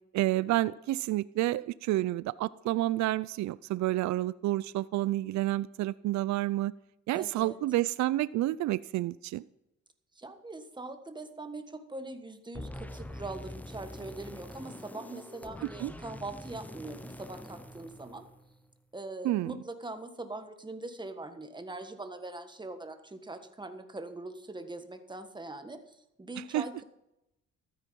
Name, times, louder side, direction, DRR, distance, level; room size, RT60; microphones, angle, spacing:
voice 1, 0.1-6.7 7.1-9.4 15.8-15.9 19.2-19.6 26.5-26.6, right 15 dB, 65° right, 19 dB, 0.5 m, -29 dB
voice 2, 7.1-7.6 10.1-18.2 18.9-26.8, right 2 dB, 15° right, 8 dB, 1.5 m, -42 dB
sound 1, 12.5-18.7, left 1 dB, 5° left, 0.9 m, -45 dB
13.0 x 9.6 x 5.4 m, 0.88 s
cardioid pair, 90°, 30 cm